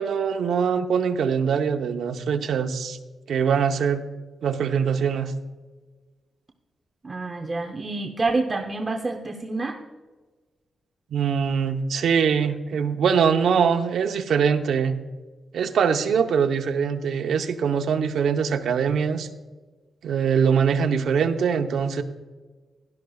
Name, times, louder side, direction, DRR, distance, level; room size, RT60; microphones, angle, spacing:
voice 1, 0.0-3.0 3.3-4.1 4.4-5.3 11.1-14.9 15.5-19.3 20.0-22.0, right 6 dB, 80° right, 5 dB, 0.8 m, -23 dB
voice 2, 7.0-9.8, right 3 dB, 25° right, 3 dB, 0.7 m, -27 dB
16.5 x 12.0 x 2.4 m, 1.3 s
wide cardioid pair, 130°, 0 cm